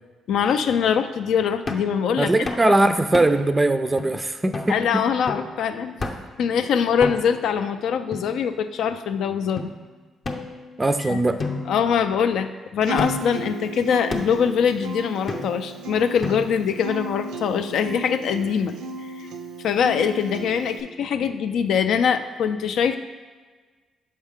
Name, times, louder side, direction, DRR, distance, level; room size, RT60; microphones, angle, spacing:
voice 1, 0.3-2.3 2.6-2.7 4.7-6.0 6.4-9.7 11.0-11.2 11.7-18.8 19.0-19.3 19.6-23.0, left 7 dB, 75° left, 9 dB, 0.3 m, -23 dB
sound 1, 1.7-1.9 2.5-2.7 3.1-3.5 4.0-4.1 4.5-4.7 5.3-5.5 6.0-6.4 7.0-7.5 8.1-8.8 9.6-9.7 10.2-10.9 11.4-12.4 13.0-13.4 14.1-14.5 15.3-15.7 16.2-16.7, left 3 dB, 40° left, 0.6 m, -32 dB
voice 2, 2.2-4.8 10.8-11.4, right 2 dB, 20° right, 9 dB, 0.4 m, -20 dB
Acoustic guitar, 12.8-20.8, right 2 dB, 90° right, 0.5 m, -35 dB
6.5 x 4.3 x 3.6 m, 1.4 s
cardioid pair, 90°, 0 cm